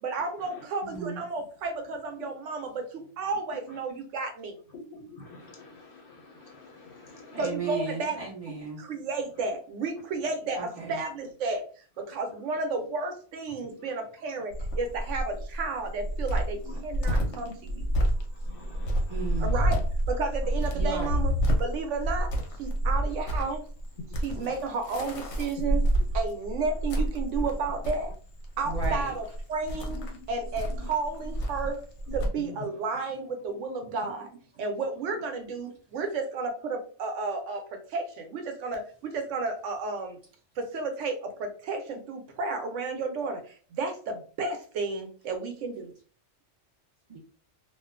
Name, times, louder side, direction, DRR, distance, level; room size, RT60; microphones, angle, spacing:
voice 1, 0.0-4.5 7.4-8.2 8.8-11.6 12.0-17.8 19.4-19.8 20.1-21.3 21.6-22.3 22.6-23.6 24.2-25.8 26.1-28.1 28.6-29.2 29.5-30.0 30.3-31.8 32.1-34.3 34.6-40.2 40.6-45.9, right 3 dB, 80° right, 0.9 m, -32 dB
voice 2, 0.8-1.2 7.3-8.8 10.6-11.0 19.1-19.5 20.7-21.2 28.6-29.1 47.1-47.2, right 4 dB, 35° right, 0.7 m, -35 dB
voice 3, 4.7-7.4 13.6-13.9 16.7-16.8 17.2-17.8 18.1-19.6 20.4-20.5 20.8-20.9 23.4-23.5 24.0-24.1 24.4-24.5 25.6-26.0 28.8-28.9 29.9-30.2 30.7-30.9 32.4-32.8, left 2 dB, 60° left, 0.6 m, -46 dB
Cricket, 14.5-32.3, right 1 dB, 90° left, 1.0 m, -29 dB
2.5 x 2.2 x 2.3 m
omnidirectional pair, 1.2 m